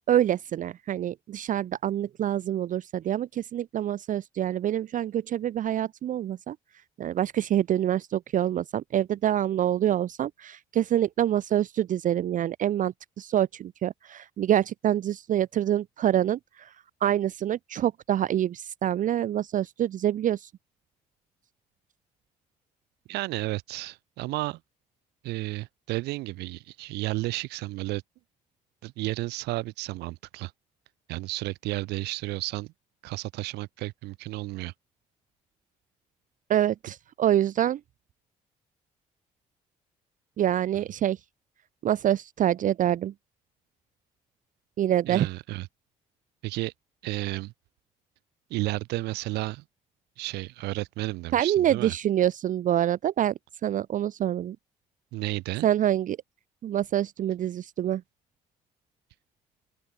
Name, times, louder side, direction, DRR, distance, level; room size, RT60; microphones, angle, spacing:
voice 1, 0.1-6.6 7.0-16.7 17.0-20.5 36.5-37.8 40.4-41.2 41.8-43.1 44.8-45.3 51.3-53.3 53.6-54.6 55.6-56.2 56.6-58.0, right 11 dB, 50° right, 0.5 m, -26 dB
voice 2, 23.1-24.6 25.2-28.0 28.8-30.5 31.1-32.7 33.0-34.7 45.1-45.7 46.4-46.7 47.0-47.5 48.5-49.6 50.2-51.9 55.1-55.7, right 19 dB, 80° right, 1.3 m, -32 dB
open air
supercardioid pair, 60°, 17 cm